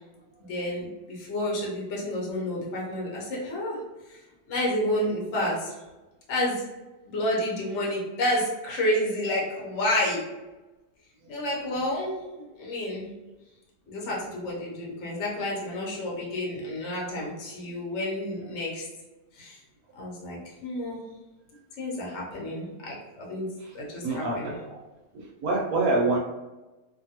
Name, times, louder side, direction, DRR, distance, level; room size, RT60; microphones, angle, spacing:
voice 1, 0.5-3.8 4.1-4.2 4.5-5.7 6.3-6.6 7.0-10.2 11.3-13.1 13.9-18.9 19.3-19.6 20.0-21.0 21.8-23.5 23.7-24.6, left 1 dB, 50° left, -4 dB, 1.0 m, -30 dB
voice 2, 24.0-24.5 25.1-26.2, right 2 dB, 70° right, -1 dB, 0.9 m, -25 dB
2.6 x 2.5 x 2.8 m, 1.1 s
omnidirectional pair, 1.7 m